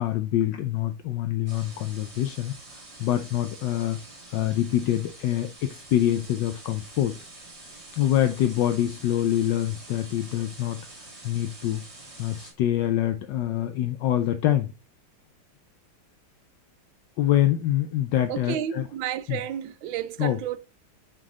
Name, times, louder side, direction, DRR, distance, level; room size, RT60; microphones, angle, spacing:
voice 1, 0.0-4.0 4.3-7.2 7.9-10.8 11.2-11.8 12.2-14.7 17.2-18.9 19.3-19.4 20.2-20.4, left 12 dB, 75° left, 1.1 m, -25 dB
sound 1, 1.5-12.5, right 2 dB, 30° right, 2.7 m, -46 dB
voice 2, 18.3-20.6, right 10 dB, 75° right, 1.4 m, -31 dB
6.2 x 5.7 x 3.9 m
omnidirectional pair, 2.2 m